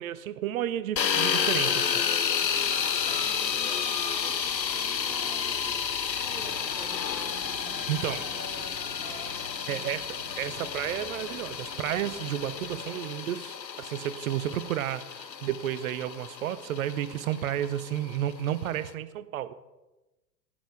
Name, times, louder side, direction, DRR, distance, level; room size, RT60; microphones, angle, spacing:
voice 1, 0.0-2.0 7.9-8.2 9.7-10.0 10.4-19.5, right 11 dB, 55° right, 15 dB, 0.8 m, -32 dB
sound 1, 1.0-18.9, left 7 dB, 90° left, 0.8 m, -31 dB
sound 2, 2.3-12.8, left 2 dB, 50° left, 4.7 m, -52 dB
voice 2, 2.5-10.1, right 2 dB, 10° right, 3 dB, 1.2 m, -49 dB
sound 3, 6.2-13.1, right 2 dB, 90° right, 1.5 m, -49 dB
11.5 x 10.5 x 5.0 m, 1.0 s
figure-of-eight pair, 100°, 50 cm